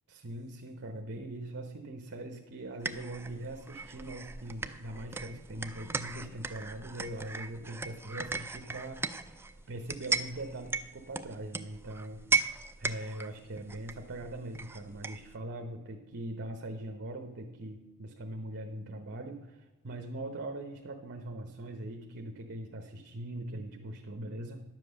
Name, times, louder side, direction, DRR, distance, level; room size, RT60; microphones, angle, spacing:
voice 1, 0.1-12.2 12.8-24.6, right 1 dB, 50° right, 4 dB, 0.9 m, -41 dB
sound 1, 2.8-15.4, right 4 dB, 10° right, 0.4 m, -37 dB
sound 2, 5.7-17.9, right 5 dB, 50° left, 2.3 m, -69 dB
11.0 x 7.7 x 6.4 m, 1.2 s
head